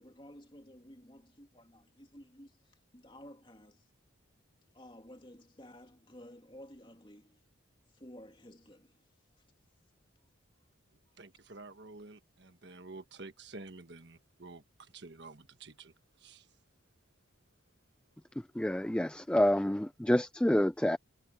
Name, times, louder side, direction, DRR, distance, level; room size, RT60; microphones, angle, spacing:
voice 1, 0.0-3.8 4.7-7.4 7.9-9.0, equal, 25° left, 2.8 m, -53 dB
voice 2, 11.2-14.6 14.9-15.9 16.2-16.5, right 3 dB, 55° right, 1.5 m, -50 dB
voice 3, 18.6-21.0, left 1 dB, 5° left, 0.3 m, -28 dB
head